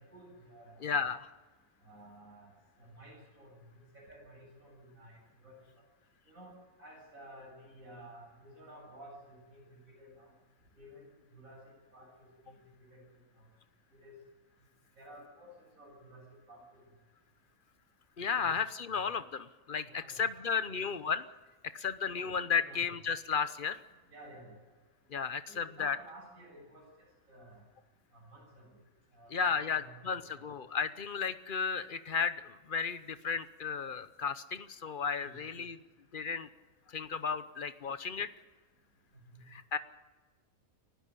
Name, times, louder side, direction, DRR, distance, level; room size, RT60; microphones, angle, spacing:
voice 1, 0.1-1.1 1.8-2.5 2.8-5.5 6.3-6.5 6.8-10.3 10.7-13.0 13.4-13.5 13.9-14.1 15.0-16.2 16.5-16.6 18.2-18.5 19.8-20.8 22.5-22.8 24.1-24.6 25.5-27.6 28.1-28.7 29.1-30.5 35.2-35.4 39.3-39.4, right 1 dB, 70° right, -3 dB, 8.5 m, -54 dB
voice 2, 0.8-1.3 18.2-21.2 21.7-23.8 25.1-26.0 29.3-35.8 36.1-36.5 36.9-38.3 39.5-39.8, left 6 dB, 40° left, 13 dB, 0.9 m, -34 dB
30.0 x 12.0 x 8.5 m, 1.3 s
omnidirectional pair, 1.5 m